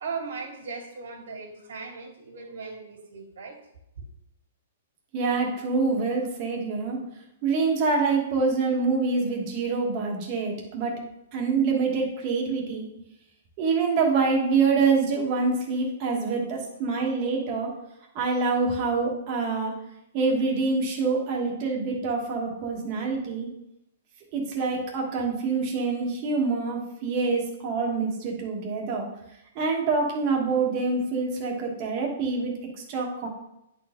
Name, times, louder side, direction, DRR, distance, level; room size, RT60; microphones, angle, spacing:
voice 1, 0.0-3.6 4.0-4.1, right 4 dB, 70° right, 2 dB, 2.3 m, -38 dB
voice 2, 5.1-7.0 7.4-11.0 11.3-12.9 13.6-17.7 18.1-19.7 20.1-23.5 24.3-29.1 29.5-32.5 32.9-33.3, right 4 dB, 25° right, 0 dB, 1.4 m, -26 dB
9.9 x 4.4 x 3.7 m, 0.85 s
hypercardioid pair, 175°, 0 cm